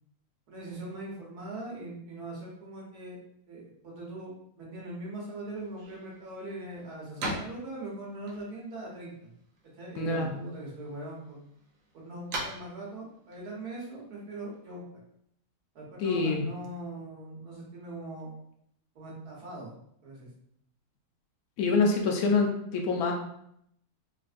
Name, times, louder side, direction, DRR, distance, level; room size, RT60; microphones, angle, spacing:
voice 1, 0.5-3.2 3.5-9.3 9.8-11.4 11.9-14.8 15.8-18.3 19.0-19.7 20.0-20.3, right 2 dB, 80° right, -4 dB, 1.8 m, -41 dB
sound 1, 5.5-14.7, right 1 dB, 65° right, 1.1 m, -43 dB
voice 2, 10.0-10.3 16.0-16.5 21.6-23.1, left 4 dB, 75° left, 2 dB, 1.1 m, -26 dB
3.9 x 3.2 x 2.5 m, 0.71 s
omnidirectional pair, 1.6 m